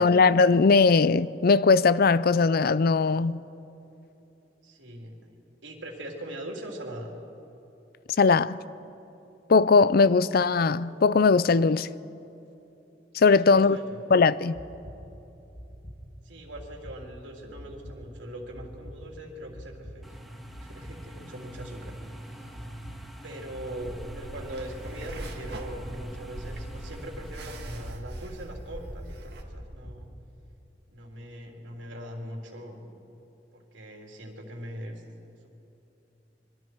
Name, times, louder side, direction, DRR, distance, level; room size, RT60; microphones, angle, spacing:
voice 1, 0.0-3.4 8.2-8.6 9.5-11.9 13.1-13.8 14.1-14.5, left 4 dB, 55° left, 0.5 m, -20 dB
voice 2, 4.6-5.2 5.6-7.1 13.3-14.0 16.2-20.2 20.6-22.7 23.2-30.1 30.9-32.9 33.5-34.9, right 1 dB, 90° right, 3.5 m, -41 dB
sound 1, 14.5-15.0 15.5-16.0 16.5-17.0 17.5-18.0 18.5-19.0 19.5-20.0 20.5-21.0 21.5-22.0 22.5-23.0 23.5-24.0 24.5-25.0 25.5-26.0 26.5-27.0 27.5-28.0 28.5-29.0 29.5-30.0, equal, 25° left, 2.1 m, -43 dB
sound 2, 20.0-27.9, right 1 dB, ahead, 1.5 m, -45 dB
sound 3, 23.8-29.4, right 1 dB, 60° right, 1.9 m, -41 dB
26.0 x 23.0 x 4.6 m
head